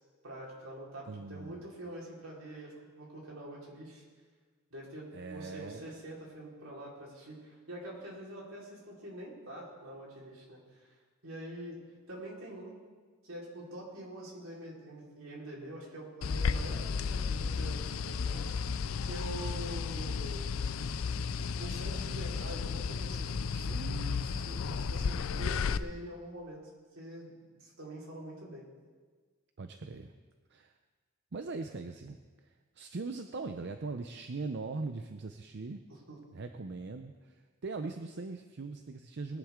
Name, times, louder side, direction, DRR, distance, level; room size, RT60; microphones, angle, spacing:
voice 1, 0.2-4.0 4.7-10.9 11.2-11.8 12.1-12.7 13.2-18.4 19.0-20.5 21.6-23.3 24.4-26.6 26.9-28.6 35.9-36.2, right 1 dB, 80° right, -4 dB, 4.3 m, -45 dB
voice 2, 1.1-1.6 5.1-6.0 23.4-25.6 29.6-30.1 30.5-30.8 31.3-35.9 36.3-39.4, right 3 dB, 55° right, 7 dB, 0.6 m, -41 dB
sound 1, 16.2-25.8, left 5 dB, 75° left, 0.4 m, -33 dB
21.0 x 10.5 x 3.7 m, 1.4 s
head